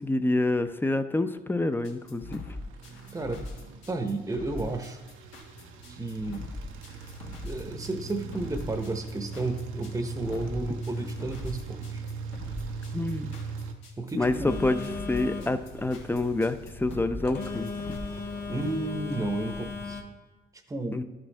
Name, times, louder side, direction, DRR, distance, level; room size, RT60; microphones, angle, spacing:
voice 1, 0.0-2.4 12.9-13.3 14.1-18.0 20.9-21.0, left 2 dB, 10° left, 10 dB, 0.5 m, -27 dB
sound 1, 1.8-18.0, left 2 dB, 90° left, 1.6 m, -42 dB
sound 2, 1.8-13.7, right 4 dB, 85° right, 0.8 m, -40 dB
voice 2, 3.1-3.4 3.9-5.0 5.9-6.5 7.4-12.0 14.0-14.6 18.5-20.0 20.7-21.0, right 2 dB, 15° right, 6 dB, 0.8 m, -32 dB
Telephone, 14.5-20.0, left 4 dB, 55° left, 1.4 m, -37 dB
12.0 x 6.2 x 3.3 m, 1.1 s
cardioid pair, 90°, 20 cm